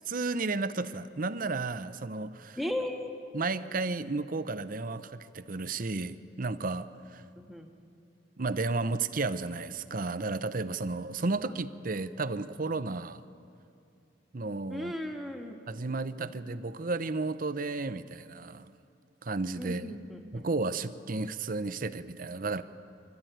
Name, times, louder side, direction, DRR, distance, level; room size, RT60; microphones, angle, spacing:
voice 1, 0.1-2.6 3.3-7.2 8.4-13.2 14.3-14.9 15.7-18.7 19.2-19.9 20.3-22.6, right 3 dB, 50° right, 12 dB, 0.8 m, -33 dB
voice 2, 2.6-3.1 7.4-7.7 14.7-15.6 16.2-16.3 19.6-20.5, left 1 dB, ahead, 2 dB, 1.8 m, -36 dB
25.5 x 13.0 x 9.2 m, 2.5 s
head